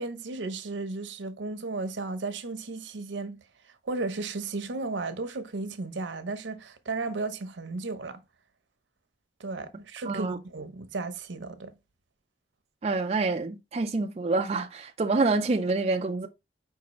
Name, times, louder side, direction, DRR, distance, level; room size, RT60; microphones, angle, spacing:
voice 1, 0.0-8.2 9.4-11.7, right 3 dB, 85° right, 0.7 m, -34 dB
voice 2, 10.1-10.4 12.8-16.3, right 3 dB, 35° right, 0.4 m, -27 dB
5.0 x 3.6 x 2.9 m
head